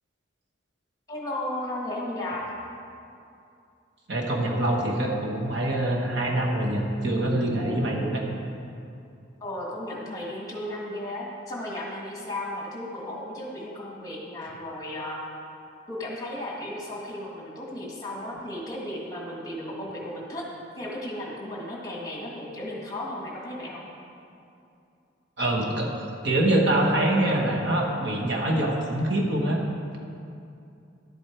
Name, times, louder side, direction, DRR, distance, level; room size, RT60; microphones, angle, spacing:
voice 1, 1.1-2.4 9.4-15.2 15.9-20.4 20.8-23.9, left 1 dB, 20° left, -3 dB, 1.6 m, -35 dB
voice 2, 4.1-8.2 25.4-29.6, right 1 dB, 60° right, -1 dB, 1.3 m, -25 dB
11.0 x 8.0 x 4.5 m, 2.6 s
head